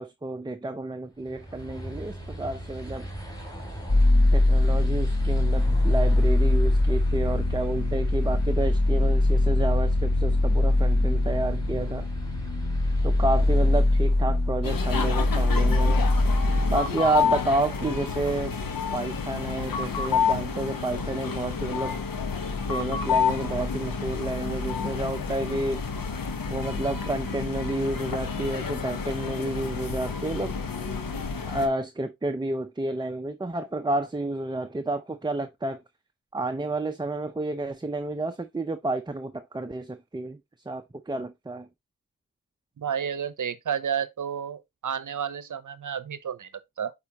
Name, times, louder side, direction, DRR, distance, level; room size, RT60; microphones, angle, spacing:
voice 1, 0.0-3.1 4.3-12.1 13.0-16.1 16.7-18.5 18.9-22.0 22.7-25.8 26.5-30.6 31.5-35.8 36.3-40.4 40.7-41.7, right 2 dB, 15° right, 0.5 m, -30 dB
sound 1, 1.1-14.6, equal, 10° left, 2.9 m, -40 dB
sound 2, 3.9-16.8, left 2 dB, 50° left, 1.9 m, -22 dB
sound 3, 14.6-31.7, left 6 dB, 75° left, 1.1 m, -29 dB
voice 2, 42.8-46.5 46.8-46.9, right 8 dB, 60° right, 0.7 m, -31 dB
8.5 x 4.3 x 2.9 m
wide cardioid pair, 70°, 34 cm